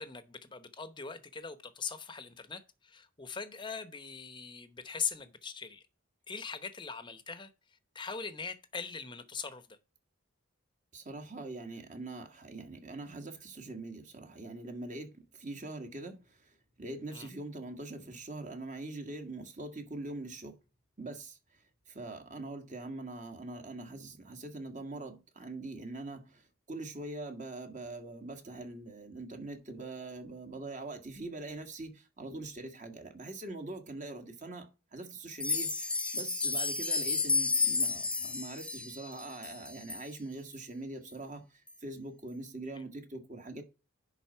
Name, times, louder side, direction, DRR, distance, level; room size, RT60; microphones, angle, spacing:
voice 1, 0.0-5.8 6.3-7.5 7.9-9.6 17.1-17.3, left 5 dB, 20° left, 0.9 m, -41 dB
voice 2, 10.9-20.6 21.0-43.6, right 2 dB, 35° right, 1.6 m, -43 dB
sound 1, 35.3-40.1 40.5-40.6 41.1-41.2 41.7-41.8, left 4 dB, 5° left, 0.5 m, -32 dB
10.5 x 4.0 x 5.6 m
head